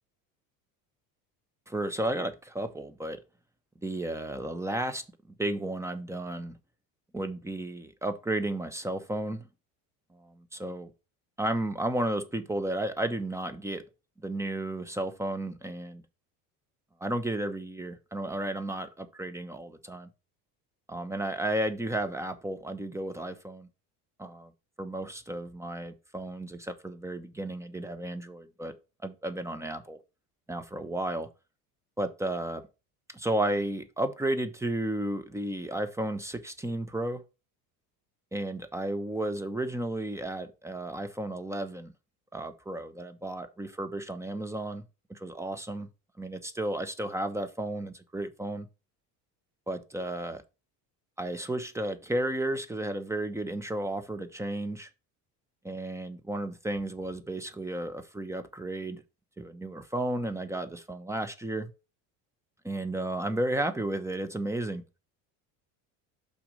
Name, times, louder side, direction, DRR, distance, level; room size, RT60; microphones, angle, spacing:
voice 1, 1.7-3.2 3.8-5.0 5.4-6.5 7.1-9.5 10.1-10.9 11.4-13.8 14.2-16.0 17.0-20.1 20.9-23.7 24.2-24.5 24.8-28.7 29.0-30.0 30.5-31.3 32.0-32.6 33.1-37.2 38.3-41.9 42.3-44.8 45.1-45.9 46.2-48.7 49.7-50.4 51.2-54.9 55.6-59.0 59.4-61.7 62.6-64.8, right 1 dB, 5° right, 1.0 m, -33 dB
5.8 x 4.2 x 5.2 m
hypercardioid pair, 80°, 46 cm